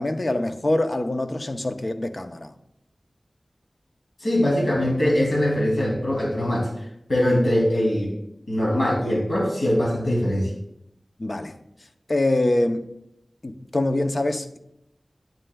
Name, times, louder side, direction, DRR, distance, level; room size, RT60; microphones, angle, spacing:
voice 1, 0.0-2.5 11.2-11.6 12.1-12.9 13.4-14.6, left 1 dB, 45° left, 0.6 m, -24 dB
voice 2, 4.2-6.7 7.1-8.1 8.5-10.5, left 1 dB, 75° left, 2.6 m, -22 dB
11.0 x 8.9 x 2.3 m
wide cardioid pair, 75°, 0 cm